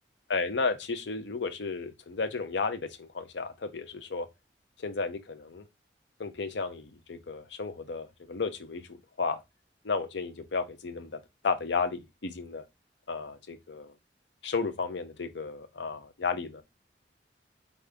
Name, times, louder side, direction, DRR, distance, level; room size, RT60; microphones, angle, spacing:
voice 1, 0.3-4.3 4.8-5.6 6.2-8.9 9.2-9.4 9.8-12.6 13.1-13.9 14.4-16.6, left 4 dB, 80° left, 0.7 m, -33 dB
4.9 x 2.7 x 3.4 m
head